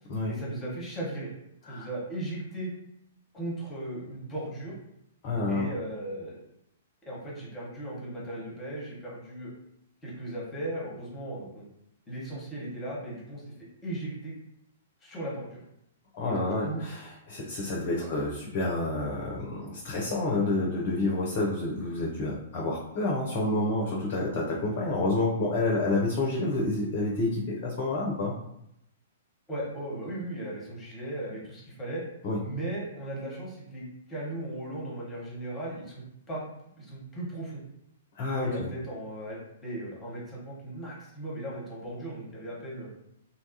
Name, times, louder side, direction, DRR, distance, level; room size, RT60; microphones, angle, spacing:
voice 1, 0.3-1.3 1.7-2.7 3.3-4.7 5.5-6.4 7.0-9.5 10.0-11.6 12.1-13.4 13.8-14.3 15.0-15.6 16.3-16.8 18.0-18.1 29.5-32.0 32.4-36.4 36.8-37.6 38.3-42.9, right 1 dB, 15° left, -5 dB, 1.0 m, -37 dB
voice 2, 5.2-5.7 16.1-28.3 32.2-32.4 38.2-38.7, left 2 dB, 35° left, -2 dB, 0.5 m, -29 dB
2.7 x 2.3 x 2.7 m, 0.78 s
figure-of-eight pair, 110°, 0 cm